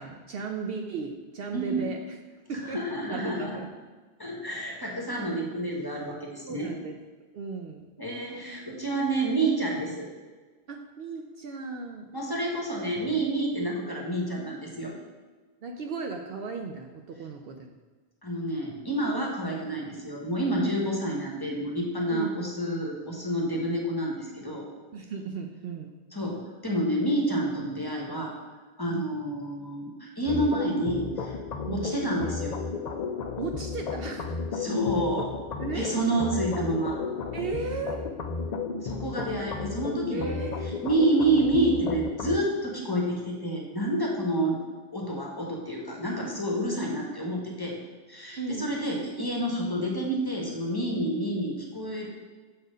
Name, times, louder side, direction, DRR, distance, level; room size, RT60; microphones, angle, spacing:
voice 1, 0.0-2.2 2.5-2.8 3.1-3.7 4.5-4.6 6.5-7.0 7.3-7.8 10.7-12.1 15.6-17.8 22.1-22.4 24.9-25.9 28.9-29.1 31.7-31.9 33.4-34.4 35.6-35.9 37.3-38.1 40.1-40.7 48.4-48.7, right 4 dB, 65° right, 4 dB, 0.7 m, -36 dB
voice 2, 1.5-1.8 2.7-3.6 4.2-6.7 8.0-10.1 12.1-14.9 18.2-24.7 26.1-28.3 28.8-31.4 31.7-32.6 34.5-35.3 35.7-37.0 38.8-40.5 40.8-44.6 44.9-47.7 48.1-52.1, right 1 dB, 20° left, -1 dB, 1.0 m, -29 dB
sound 1, 30.3-42.4, left 4 dB, 55° left, 0.5 m, -33 dB
6.8 x 4.3 x 5.0 m, 1.4 s
omnidirectional pair, 1.2 m